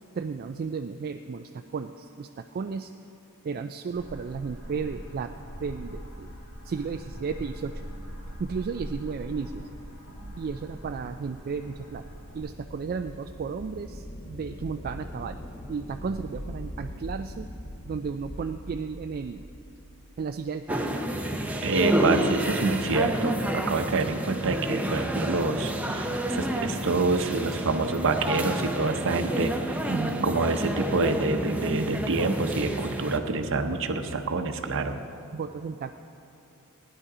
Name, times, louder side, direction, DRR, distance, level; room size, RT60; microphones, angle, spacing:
voice 1, 0.2-2.9 3.4-5.3 5.6-6.3 6.6-7.8 8.4-9.7 10.4-12.0 12.3-15.4 15.7-17.5 17.8-19.5 20.2-21.0 29.9-30.3 35.3-36.0, right 5 dB, 45° right, 6 dB, 0.3 m, -34 dB
sound 1, 3.9-12.4, equal, 75° left, 2.6 m, -42 dB
sound 2, 10.6-20.4, equal, 30° left, 0.8 m, -42 dB
sound 3, 20.7-33.2, right 1 dB, 5° right, 0.7 m, -29 dB
voice 2, 21.6-29.8 30.2-35.0, right 3 dB, 60° right, 7 dB, 0.8 m, -27 dB
16.5 x 10.0 x 4.9 m, 2.8 s
head